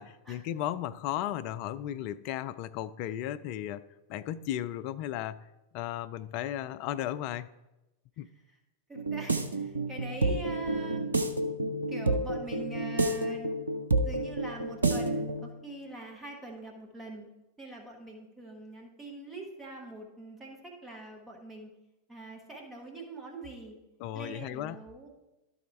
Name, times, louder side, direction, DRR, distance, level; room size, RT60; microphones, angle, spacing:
voice 1, 0.0-3.8 4.1-5.4 5.7-7.5 8.2-8.3 24.0-24.8, left 12 dB, 45° left, 13 dB, 0.3 m, -35 dB
voice 2, 8.9-11.1 11.9-13.6 14.0-17.3 17.6-21.7 22.1-23.8 24.1-25.1, right 2 dB, 10° right, -1 dB, 1.4 m, -43 dB
sound 1, 8.9-15.5, right 2 dB, 80° right, 0.6 m, -30 dB
12.0 x 4.2 x 4.4 m, 0.99 s
figure-of-eight pair, 90°, 0 cm